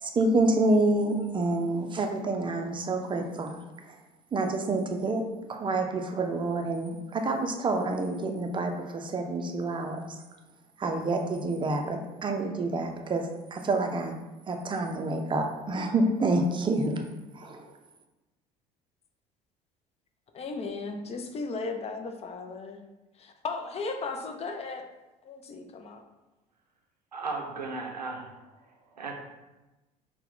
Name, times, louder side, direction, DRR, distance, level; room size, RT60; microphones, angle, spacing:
voice 1, 0.0-3.6 4.3-5.2 5.5-10.1 10.8-14.2 14.5-17.0 17.4-17.6, right 2 dB, 25° right, 4 dB, 0.5 m, -28 dB
voice 2, 20.3-22.8 23.2-24.9 25.2-26.0, left 3 dB, 30° left, 4 dB, 0.5 m, -36 dB
voice 3, 27.1-28.3 29.0-29.1, right 3 dB, 90° right, 2 dB, 0.5 m, -35 dB
4.4 x 2.2 x 3.6 m, 1.1 s
figure-of-eight pair, 60°, 21 cm